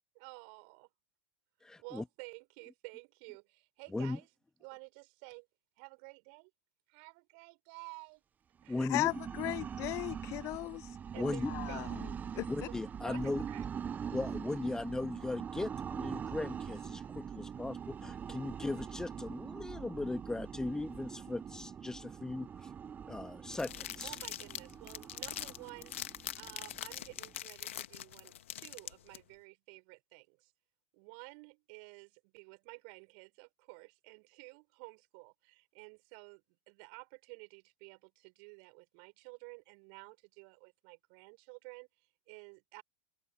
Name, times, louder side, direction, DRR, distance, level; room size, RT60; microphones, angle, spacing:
voice 1, 0.1-0.9 1.8-4.3 4.6-5.5 5.8-6.5 6.9-8.2 8.6-8.9 11.1-11.9 12.7-13.7 24.0-30.5 30.9-42.8, right 40 dB or more, 50° right, 4.4 m, -52 dB
voice 2, 1.6-2.0 3.9-4.2 8.7-9.1 11.2-11.5 12.5-13.4 14.1-22.7 23.1-24.1, left 2 dB, 10° left, 2.4 m, -38 dB
sound 1, 8.6-27.4, right 7 dB, 25° right, 0.9 m, -43 dB
voice 3, 8.9-10.9 11.2-12.1 12.3-12.5, left 19 dB, 45° left, 0.9 m, -36 dB
sound 2, 23.5-29.2, left 11 dB, 70° left, 1.8 m, -43 dB
figure-of-eight pair, 85°, 7 cm